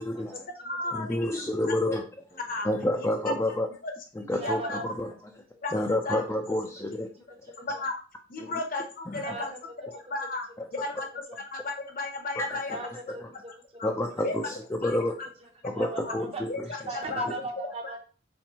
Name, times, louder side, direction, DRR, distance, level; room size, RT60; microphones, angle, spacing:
voice 1, 0.0-0.3 0.9-2.0 2.6-3.7 4.2-5.1 5.7-7.1 8.4-8.5 12.4-12.8 13.8-15.1 15.6-16.5, left 1 dB, 15° left, 1 dB, 0.4 m, -29 dB
voice 2, 0.6-1.3 1.9-2.0 2.5-2.7 3.0-3.1 3.8-3.9 4.2-4.8 5.6-5.8 6.0-6.2 7.7-7.9 8.3-9.5 10.1-10.5 10.7-11.1 11.4-12.8 13.1-13.2 13.8-13.9 14.2-14.3 14.8-14.9 16.0-16.1 16.5-16.8 17.1-17.3, left 2 dB, 45° left, 4 dB, 0.8 m, -33 dB
voice 3, 4.4-4.8 7.7-7.8 9.2-9.6 11.3-11.4 12.7-13.5 15.4-18.0, right 3 dB, 30° right, 2 dB, 0.8 m, -38 dB
4.3 x 3.4 x 2.8 m, 0.37 s
head